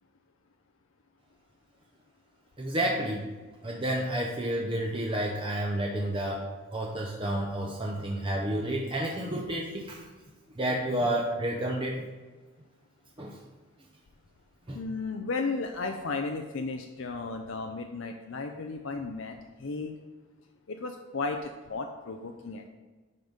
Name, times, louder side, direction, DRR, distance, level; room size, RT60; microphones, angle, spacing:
voice 1, 2.6-3.3 3.6-6.4 6.7-10.0 10.6-12.0 13.2-13.4 14.7-14.8, right 1 dB, 25° right, -1 dB, 0.7 m, -30 dB
voice 2, 14.7-19.9 20.7-22.7, left 3 dB, 65° left, 4 dB, 0.5 m, -34 dB
10.5 x 3.9 x 5.2 m, 1.3 s
head